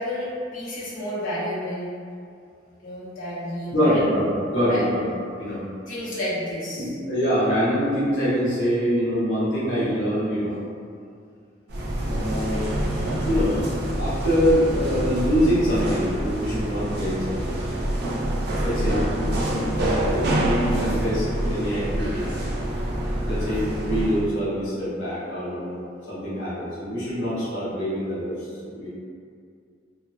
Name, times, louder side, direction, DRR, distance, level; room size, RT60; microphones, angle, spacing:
voice 1, 0.0-1.9 2.8-4.0 4.7-4.8 5.9-6.9, equal, 45° left, -12 dB, 0.8 m, -30 dB
voice 2, 3.7-4.3 4.5-5.0 5.4-5.6 6.8-10.6 12.0-12.8 13.1-13.7 14.0-17.5 18.6-22.3 23.3-28.9, equal, 75° left, -10 dB, 0.8 m, -25 dB
sound 1, 11.7-24.3, right 1 dB, 60° right, 0.4 m, -26 dB
2.7 x 2.2 x 2.5 m, 2.3 s
head